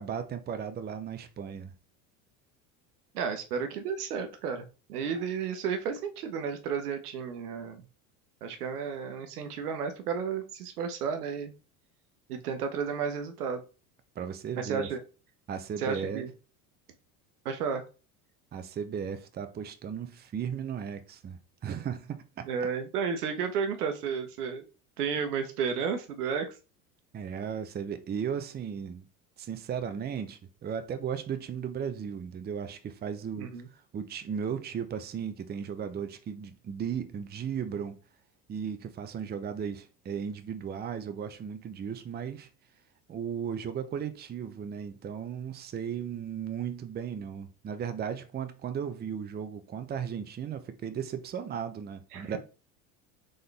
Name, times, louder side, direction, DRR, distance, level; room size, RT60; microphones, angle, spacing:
voice 1, 0.0-1.7 14.2-14.9 15.5-16.2 18.5-22.7 27.1-29.1 29.4-38.0 38.5-42.5 43.1-52.4, right 7 dB, 20° right, 0.6 m, -36 dB
voice 2, 3.1-7.8 8.4-11.5 12.3-13.6 14.6-15.0 15.8-16.3 17.4-17.8 22.5-24.7 25.0-26.5 33.4-33.7 52.1-52.4, right 6 dB, 80° right, 1.0 m, -32 dB
3.8 x 3.8 x 3.3 m
hypercardioid pair, 80°, 45 cm